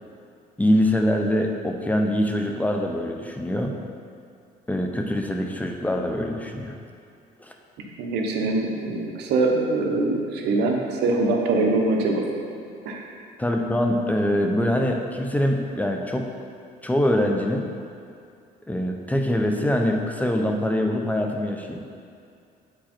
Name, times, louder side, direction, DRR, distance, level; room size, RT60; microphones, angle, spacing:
voice 1, 0.6-3.8 4.7-6.8 7.4-7.5 13.4-16.3 16.8-17.7 18.7-21.8, left 1 dB, 10° left, 2 dB, 0.6 m, -24 dB
voice 2, 7.8-12.2 12.8-13.0, right 2 dB, 80° right, 1 dB, 1.0 m, -23 dB
8.5 x 5.0 x 4.3 m, 2.4 s
cardioid pair, 110°, 17 cm